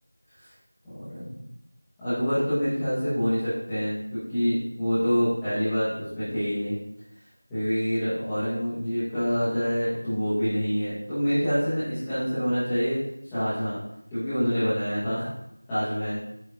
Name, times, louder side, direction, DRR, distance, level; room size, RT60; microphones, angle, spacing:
voice 1, 0.8-1.4 2.0-6.8 7.5-13.8 14.1-15.3 15.7-16.2, equal, 5° left, -21 dB, 1.8 m, -26 dB
8.7 x 8.1 x 2.9 m, 0.79 s
figure-of-eight pair, 175°, 0 cm